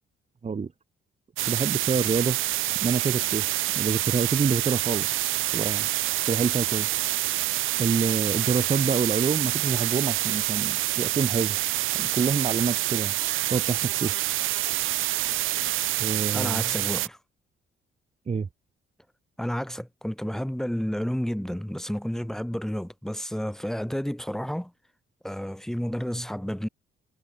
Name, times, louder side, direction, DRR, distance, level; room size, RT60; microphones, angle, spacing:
sound 1, 1.4-17.1, right 16 dB, 85° right, 1.2 m, -27 dB
voice 1, 1.5-2.4 2.8-3.4 3.8-5.1 5.5-5.9 6.3-6.9 7.8-11.6 12.0-13.1 13.5-14.1 16.0-16.6 18.3-18.5, right 5 dB, 35° right, 1.8 m, -27 dB
voice 2, 16.3-17.2 19.4-24.7 25.2-26.7, equal, ahead, 5.9 m, -31 dB
cardioid pair, 90°, 20 cm